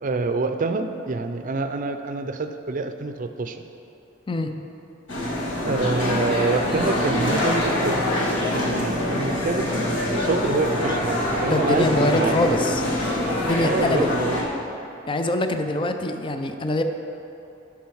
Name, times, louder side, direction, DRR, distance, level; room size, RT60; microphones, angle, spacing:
voice 1, 0.0-3.6 5.7-8.0 8.5-12.7 13.6-14.6, right 3 dB, 45° right, 8 dB, 0.5 m, -26 dB
sound 1, 5.1-14.4, left 1 dB, 75° left, 1.8 m, -24 dB
voice 2, 11.5-12.8 13.4-14.1 15.1-16.8, left 1 dB, 25° left, 7 dB, 0.4 m, -23 dB
11.5 x 6.0 x 4.7 m, 2.9 s
head